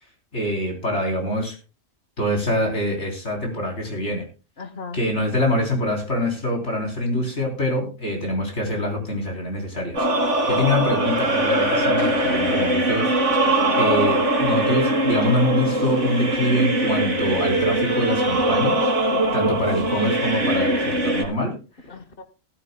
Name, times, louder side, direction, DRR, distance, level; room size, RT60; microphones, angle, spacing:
voice 1, 0.3-1.6 2.2-4.2 4.9-13.4 13.8-18.9 19.3-21.6, left 1 dB, 60° left, 1 dB, 4.0 m, -25 dB
voice 2, 4.6-5.0 13.4-13.9 19.1-19.5 21.9-22.2, left 4 dB, 45° left, 10 dB, 1.4 m, -37 dB
sound 1, 10.0-21.2, right 1 dB, 70° right, 2.5 m, -21 dB
18.5 x 13.0 x 2.2 m, 0.33 s
omnidirectional pair, 1.3 m